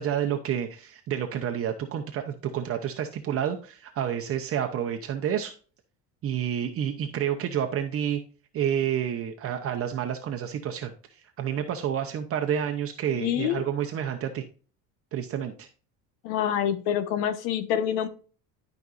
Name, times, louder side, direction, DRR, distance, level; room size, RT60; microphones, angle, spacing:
voice 1, 0.0-5.5 6.2-8.2 8.5-14.5 15.1-15.7, right 9 dB, 40° right, 5 dB, 0.8 m, -29 dB
voice 2, 13.1-13.6 16.2-18.1, left 9 dB, 85° left, 11 dB, 1.2 m, -26 dB
12.5 x 5.2 x 2.5 m, 0.39 s
cardioid pair, 140°, 37 cm